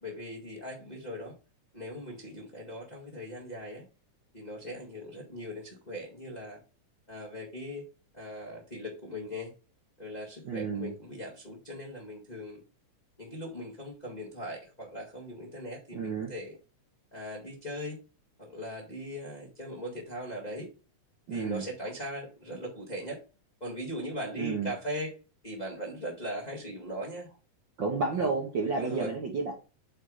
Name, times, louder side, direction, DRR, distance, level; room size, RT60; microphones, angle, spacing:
voice 1, 0.0-1.3 1.7-3.8 4.3-6.6 7.1-7.8 8.1-9.5 10.0-12.6 13.2-16.6 17.1-18.0 18.4-20.7 21.3-23.2 23.6-25.1 25.4-27.3 28.1-28.3 28.7-29.1, equal, 20° left, -3 dB, 1.4 m, -39 dB
voice 2, 10.4-10.9 15.9-16.3 21.3-21.6 24.4-24.7 27.8-29.5, right 4 dB, 50° right, 0 dB, 1.5 m, -31 dB
8.6 x 3.5 x 4.9 m, 0.33 s
omnidirectional pair, 3.5 m